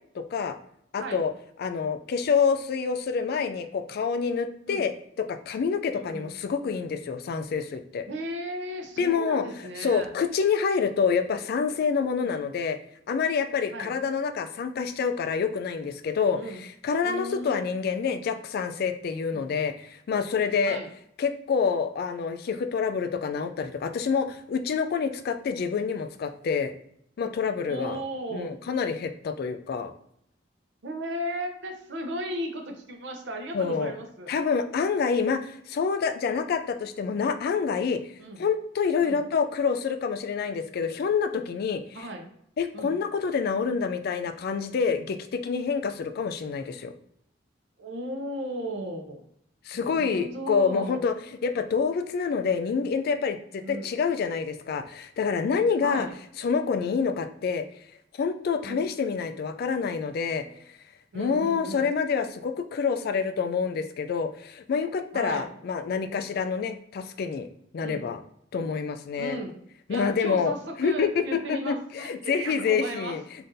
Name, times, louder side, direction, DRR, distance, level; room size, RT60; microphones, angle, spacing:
voice 1, 0.1-0.6 0.9-1.3 1.6-8.1 9.0-9.4 9.8-12.8 13.1-20.8 21.2-26.7 27.2-28.0 28.3-29.9 33.5-33.9 34.3-38.0 38.4-42.1 42.6-46.9 49.7-51.1 51.4-56.1 56.4-57.7 58.2-60.4 61.1-67.5 67.7-68.2 68.5-69.4 69.9-70.5 70.8-73.2, left 5 dB, 55° left, 8 dB, 0.3 m, -27 dB
voice 2, 5.9-6.3 8.1-10.1 12.2-12.4 13.7-13.9 16.3-16.6 17.0-17.7 19.3-19.6 20.6-20.9 27.6-28.6 30.8-34.3 38.2-38.4 39.0-39.2 41.9-42.3 42.7-42.9 47.8-49.2 49.7-51.0 53.6-53.9 55.8-56.1 58.6-58.8 60.4-60.6 61.1-61.8 65.1-65.5 67.8-68.0 69.2-69.6 69.9-73.2, right 1 dB, 65° right, 3 dB, 0.6 m, -36 dB
3.7 x 2.6 x 2.6 m, 0.70 s
head